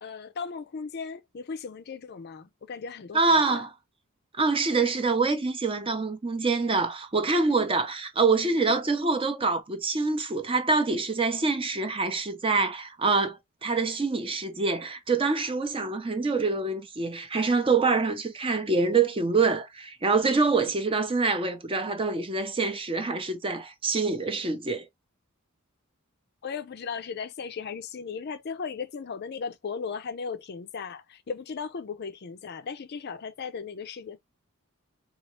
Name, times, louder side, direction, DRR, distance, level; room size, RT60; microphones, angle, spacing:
voice 1, 0.0-3.6 26.4-34.2, left 5 dB, 45° left, 0.4 m, -37 dB
voice 2, 3.1-3.7 4.4-24.9, right 4 dB, 25° right, 0.6 m, -25 dB
4.1 x 2.4 x 3.0 m
head